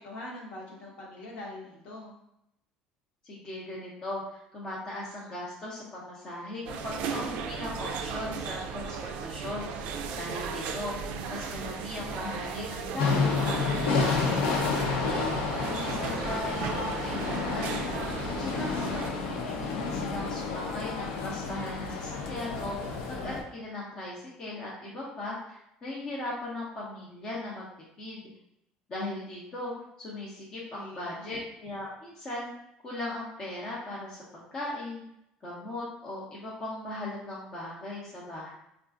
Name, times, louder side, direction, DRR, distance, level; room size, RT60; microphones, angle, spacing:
voice 1, 0.0-2.2 15.6-16.2 30.7-31.3, left 2 dB, 60° left, -3 dB, 1.0 m, -43 dB
voice 2, 3.2-15.2 15.6-17.8 18.4-27.7 28.0-28.3 28.9-29.7 30.0-32.5 32.8-34.2 34.5-35.0 35.4-38.5, left 1 dB, 30° left, -6 dB, 0.7 m, -38 dB
sound 1, 6.7-19.1, right 5 dB, 65° right, 0.3 m, -36 dB
sound 2, 13.0-23.4, left 4 dB, 80° left, 0.5 m, -30 dB
3.7 x 2.4 x 2.4 m, 0.80 s
cardioid pair, 160°, 2 cm